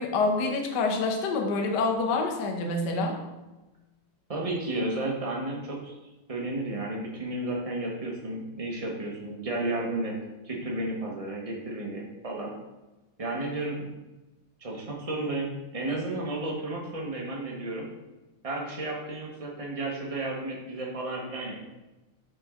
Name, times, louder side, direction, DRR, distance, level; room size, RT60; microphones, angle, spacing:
voice 1, 0.0-3.2, left 3 dB, 60° left, 2 dB, 1.3 m, -27 dB
voice 2, 4.3-5.9 6.3-10.1 10.4-12.5 13.2-13.9 14.6-17.9 18.4-21.5, right 2 dB, 35° right, -2 dB, 0.5 m, -32 dB
6.0 x 5.3 x 3.7 m, 1.1 s
omnidirectional pair, 2.4 m